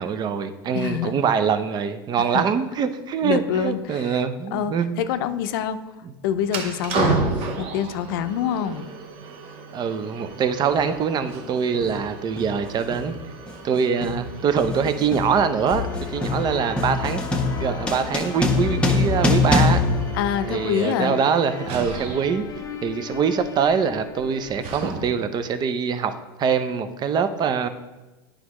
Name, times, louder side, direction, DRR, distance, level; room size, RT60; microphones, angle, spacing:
voice 1, 0.0-5.0 9.7-13.1 13.6-15.9 16.1-19.8 20.5-22.5 22.8-27.7, right 6 dB, 35° right, 11 dB, 0.6 m, -24 dB
voice 2, 0.7-1.2 2.3-2.4 3.2-4.2 4.5-5.8 6.2-7.3 7.6-8.9 20.1-21.1, left 9 dB, 70° left, 11 dB, 0.5 m, -26 dB
sound 1, 6.4-25.4, right 3 dB, 55° right, 0.9 m, -34 dB
sound 2, 10.7-10.9 11.8-12.1 12.4-20.9, left 3 dB, 10° left, 1.1 m, -24 dB
sound 3, 15.7-24.7, left 8 dB, 30° left, 0.7 m, -36 dB
9.4 x 4.9 x 3.1 m, 1.1 s
hypercardioid pair, 95°, 12 cm